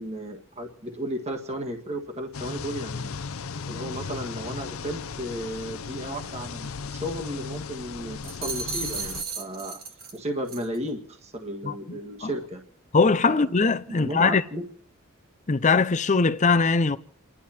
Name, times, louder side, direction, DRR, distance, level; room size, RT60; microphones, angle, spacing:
voice 1, 0.0-3.1 3.7-9.8 10.1-12.6 13.3-13.5 13.9-14.7, equal, 30° right, 1.5 m, -34 dB
sound 1, 2.3-9.2, left 5 dB, 90° left, 0.6 m, -36 dB
sound 2, 8.2-10.2 10.5-10.8, right 5 dB, 45° right, 1.8 m, -34 dB
voice 2, 11.6-12.3 12.9-14.4 15.5-17.0, left 4 dB, 35° left, 0.6 m, -21 dB
29.5 x 11.0 x 4.3 m
head